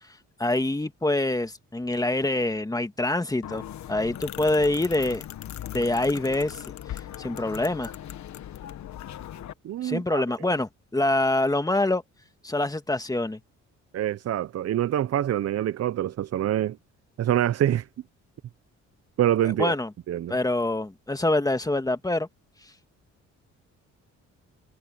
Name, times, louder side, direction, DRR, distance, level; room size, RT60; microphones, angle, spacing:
voice 1, 0.4-3.6 3.9-5.2 5.7-6.6 7.2-7.9 9.8-12.0 12.4-13.4 19.6-19.9 20.3-22.3, left 2 dB, 10° left, 1.8 m, -25 dB
sound 1, 3.4-9.5, left 11 dB, 65° left, 1.4 m, -39 dB
voice 2, 9.6-10.2 13.9-16.8 17.2-17.9 19.2-19.7 20.1-20.3, right 11 dB, 55° right, 0.7 m, -25 dB
cardioid pair, 90°, 30 cm